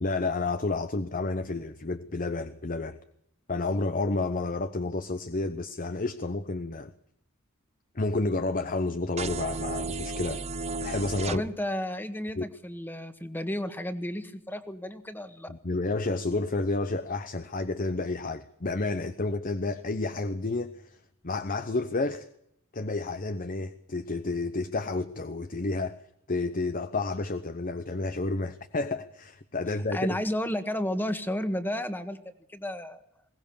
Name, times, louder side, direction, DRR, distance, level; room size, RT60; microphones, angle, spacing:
voice 1, 0.0-3.0 3.5-6.9 7.9-10.4 10.8-11.4 12.4-12.5 15.5-21.0 21.2-22.3 22.7-26.0 26.3-30.1, left 3 dB, 40° left, 10 dB, 0.9 m, -30 dB
sound 1, 9.2-11.4, right 3 dB, 30° right, 0.8 m, -33 dB
voice 2, 11.3-15.5 29.9-32.2 32.5-33.0, left 1 dB, 10° left, 9 dB, 1.6 m, -32 dB
21.5 x 18.5 x 7.1 m, 0.76 s
head